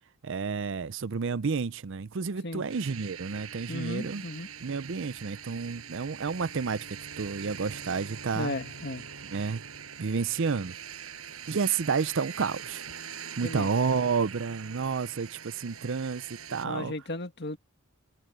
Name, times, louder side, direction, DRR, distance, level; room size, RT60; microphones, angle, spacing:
voice 1, 0.2-4.2 4.6-6.9 7.2-8.5 9.3-9.6 10.0-10.7 11.5-12.8 13.4-16.9, right 5 dB, 55° right, 0.5 m, -30 dB
sound 1, 2.7-16.6, right 8 dB, 70° right, 6.1 m, -43 dB
voice 2, 3.7-4.5 8.4-9.0 13.4-13.7 16.6-17.6, left 2 dB, 50° left, 2.0 m, -35 dB
head